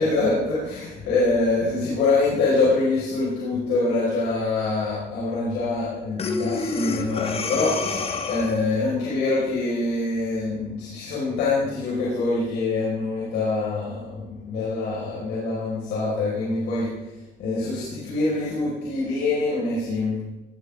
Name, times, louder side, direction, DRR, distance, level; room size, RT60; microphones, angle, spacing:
voice 1, 0.0-16.9 17.4-20.2, left 3 dB, 80° left, -7 dB, 5.4 m, -25 dB
Breathing, 6.2-8.8, left 4 dB, 35° left, 1.4 m, -28 dB
19.0 x 11.5 x 3.7 m, 1.0 s
cardioid pair, 110°, 17 cm